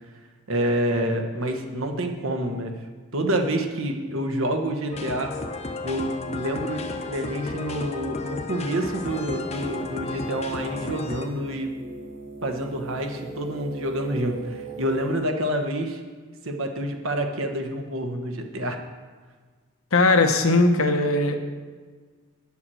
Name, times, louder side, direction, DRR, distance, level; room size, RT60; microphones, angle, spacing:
voice 1, 0.5-2.7 3.1-5.3 5.8-11.8 12.4-16.0 16.4-18.8, right 1 dB, 70° right, 4 dB, 1.2 m, -28 dB
sound 1, 4.9-11.3, left 3 dB, 30° left, 0.7 m, -33 dB
sound 2, 9.0-15.2, right 4 dB, 50° right, 2.1 m, -40 dB
voice 2, 19.9-21.4, left 2 dB, 80° left, 6 dB, 0.9 m, -19 dB
9.1 x 7.1 x 6.2 m, 1.5 s
head